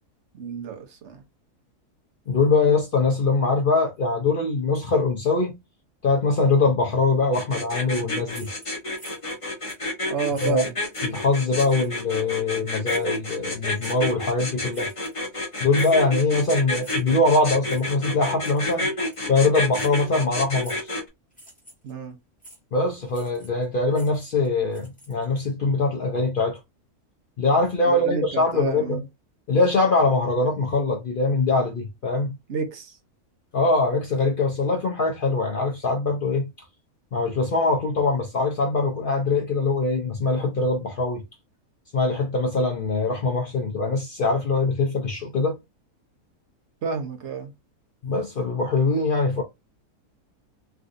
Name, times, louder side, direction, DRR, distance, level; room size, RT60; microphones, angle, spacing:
voice 1, 0.3-1.2 10.1-10.7 21.8-22.1 27.8-29.0 32.5-33.0 46.8-47.5, right 5 dB, 55° right, 1.0 m, -30 dB
voice 2, 2.3-5.5 6.0-8.5 10.4-10.6 11.0-14.9 15.6-18.9 19.3-20.8 22.7-26.6 27.4-29.0 29.5-32.3 33.5-36.5 37.1-41.2 41.9-45.6 48.0-49.4, left 3 dB, 65° left, 0.5 m, -22 dB
sound 1, 7.3-21.0, left 1 dB, 25° left, 0.7 m, -29 dB
sound 2, 8.3-9.4 9.7-9.9 10.3-11.2 11.6-11.9 12.8-13.2 13.8-14.0 14.7-15.4 15.8-16.1 16.8-17.2 17.7-17.9 18.4-18.8 19.1-19.3 19.7-20.0 20.6-20.9 21.3-21.9 22.4-22.6 23.1-23.6 23.9-25.4, right 1 dB, 5° left, 1.0 m, -48 dB
3.5 x 2.6 x 2.4 m
omnidirectional pair, 1.6 m